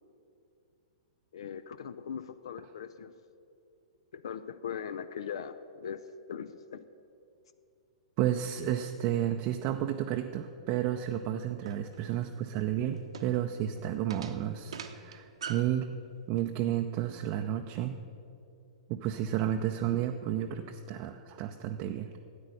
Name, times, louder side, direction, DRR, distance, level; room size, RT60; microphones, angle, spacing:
voice 1, 1.3-3.1 4.1-6.9, left 7 dB, 55° left, 12 dB, 0.4 m, -40 dB
voice 2, 8.2-15.9 16.3-18.0 18.9-22.1, right 11 dB, 35° right, 4 dB, 0.5 m, -32 dB
sound 1, 11.6-15.8, right 6 dB, 60° right, 0.8 m, -44 dB
13.0 x 9.2 x 6.4 m, 2.6 s
figure-of-eight pair, 105°, 3 cm